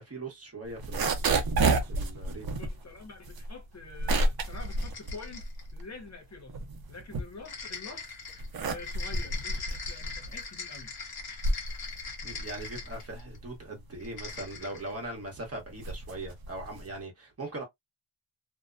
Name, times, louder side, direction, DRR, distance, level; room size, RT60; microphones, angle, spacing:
voice 1, 0.0-1.3 1.9-2.4 12.2-17.6, right 2 dB, 35° right, 1.1 m, -40 dB
sound 1, 0.7-6.0 6.3-7.8 8.2-17.0, right 2 dB, 55° right, 0.7 m, -31 dB
voice 2, 2.5-6.6 6.9-8.2 8.6-10.9, left 4 dB, 40° left, 0.7 m, -46 dB
sound 2, 4.4-5.7 7.4-13.4 14.0-14.9, left 5 dB, 55° left, 1.1 m, -41 dB
2.7 x 2.2 x 2.4 m
wide cardioid pair, 160°, 44 cm